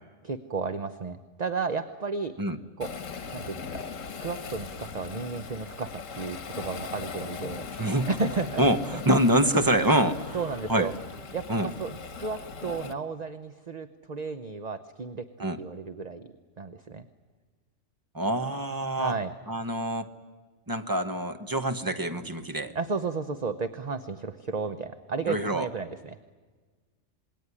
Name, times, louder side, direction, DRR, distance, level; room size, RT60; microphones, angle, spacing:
voice 1, 0.2-2.3 2.8-2.9 3.3-3.8 4.1-8.6 10.3-10.9 11.3-15.3 15.6-16.3 16.6-17.0 19.0-19.3 22.7-26.2, right 4 dB, 35° right, 10 dB, 0.9 m, -33 dB
Waves surf, 2.8-12.9, left 5 dB, 85° left, 1.8 m, -39 dB
voice 2, 7.8-8.1 8.6-10.4 10.7-10.9 11.5-11.7 15.4-15.6 18.1-19.2 19.5-20.1 20.7-22.7 25.3-25.7, right 1 dB, 15° right, 8 dB, 1.2 m, -25 dB
27.5 x 21.0 x 9.9 m, 1.4 s
omnidirectional pair, 1.3 m